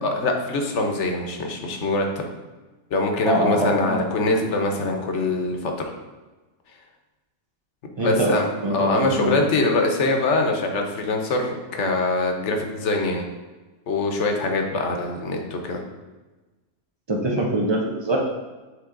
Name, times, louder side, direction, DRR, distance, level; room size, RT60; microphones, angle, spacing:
voice 1, 0.0-2.3 2.9-5.9 8.0-13.2 13.9-15.8, left 2 dB, 60° left, 3 dB, 1.1 m, -23 dB
voice 2, 3.2-4.0 8.0-9.4 17.1-18.2, right 1 dB, 45° right, -1 dB, 0.3 m, -23 dB
7.8 x 3.2 x 3.8 m, 1.2 s
omnidirectional pair, 1.4 m